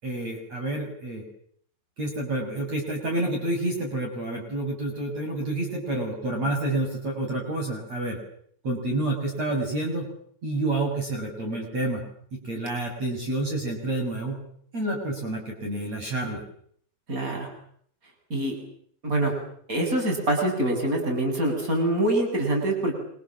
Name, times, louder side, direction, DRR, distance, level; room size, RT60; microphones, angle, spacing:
voice 1, 0.0-1.2 2.0-8.2 8.6-10.1 10.4-12.0 12.4-14.4 14.7-16.4, right 2 dB, 35° right, 1 dB, 7.6 m, -29 dB
voice 2, 17.1-17.5 18.3-18.5 19.0-19.3 19.7-22.9, right 1 dB, 15° right, 3 dB, 8.3 m, -25 dB
28.0 x 27.5 x 7.6 m, 0.65 s
omnidirectional pair, 5.4 m